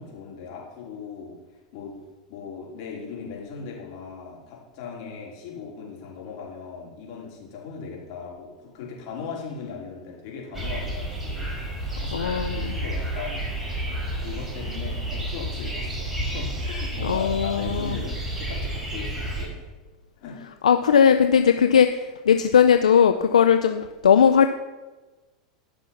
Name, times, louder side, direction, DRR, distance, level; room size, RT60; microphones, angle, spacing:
voice 1, 0.0-1.3 1.7-2.0 2.3-13.5 14.2-19.7 20.2-20.4, left 5 dB, 60° left, -3 dB, 4.4 m, -38 dB
sound 1, 10.5-19.5, right 1 dB, 10° right, 4.5 m, -30 dB
voice 2, 12.1-12.7 17.0-17.9 20.6-24.5, left 7 dB, 90° left, 8 dB, 0.5 m, -18 dB
14.0 x 6.1 x 5.7 m, 1.2 s
hypercardioid pair, 100°, 4 cm